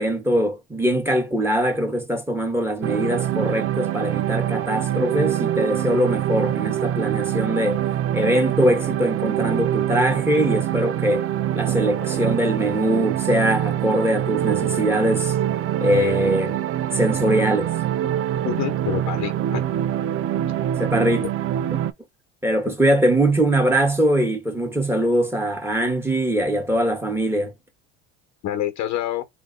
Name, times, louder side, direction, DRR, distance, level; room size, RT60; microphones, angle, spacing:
voice 1, 0.0-7.8 8.1-11.2 11.5-15.3 15.8-16.6 16.9-17.7 20.8-21.3 21.7-21.8 22.4-27.5, right 1 dB, 5° right, 1.7 m, -22 dB
sound 1, 2.8-21.9, right 11 dB, 45° right, 0.4 m, -24 dB
voice 2, 18.4-19.6 22.7-22.8 28.4-29.2, left 12 dB, 60° left, 1.1 m, -27 dB
3.8 x 2.5 x 4.0 m
supercardioid pair, 90°, 32 cm